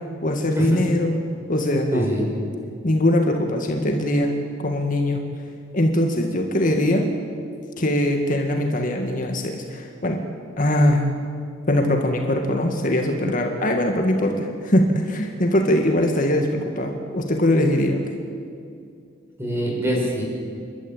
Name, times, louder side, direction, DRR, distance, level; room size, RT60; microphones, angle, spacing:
voice 1, 0.2-1.2 1.5-2.1 2.8-4.3 4.6-5.2 5.7-7.1 7.8-10.2 10.6-11.1 11.7-18.0, left 1 dB, 45° left, 3 dB, 2.0 m, -21 dB
voice 2, 1.9-2.3 19.4-20.2, equal, 15° right, -2 dB, 5.8 m, -23 dB
29.0 x 12.5 x 9.0 m, 2.4 s
head